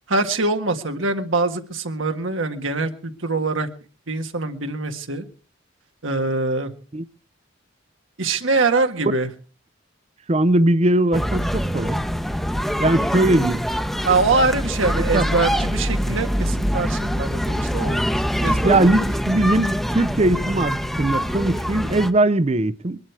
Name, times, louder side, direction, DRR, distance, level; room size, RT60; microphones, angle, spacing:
voice 1, 0.1-3.7 4.1-5.2 6.0-6.7 8.2-9.3 14.0-18.0 18.4-18.9, right 3 dB, 85° right, 1.7 m, -23 dB
voice 2, 10.3-12.0 12.8-13.6 15.1-15.3 18.6-23.0, right 2 dB, 35° right, 0.6 m, -20 dB
sound 1, 11.1-22.1, equal, ahead, 0.8 m, -24 dB
22.0 x 11.5 x 4.8 m
head